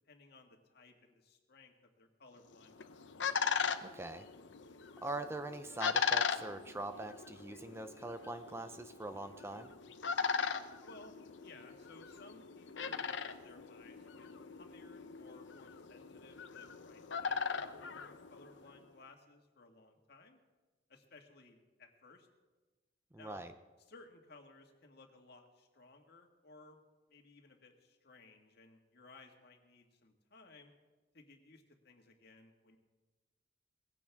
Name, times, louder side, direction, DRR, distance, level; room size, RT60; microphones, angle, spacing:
voice 1, 0.1-3.0 10.8-11.1 11.4-20.4 20.9-22.3 23.2-23.4 23.8-26.8 27.1-30.7 31.1-32.8, left 3 dB, 60° left, 3 dB, 1.9 m, -59 dB
sound 1, 2.5-18.8, left 5 dB, 85° left, 0.8 m, -39 dB
voice 2, 3.8-4.3 5.0-9.7 23.1-23.5, right 2 dB, 15° right, 8 dB, 0.6 m, -43 dB
20.0 x 16.0 x 3.6 m, 1.2 s
head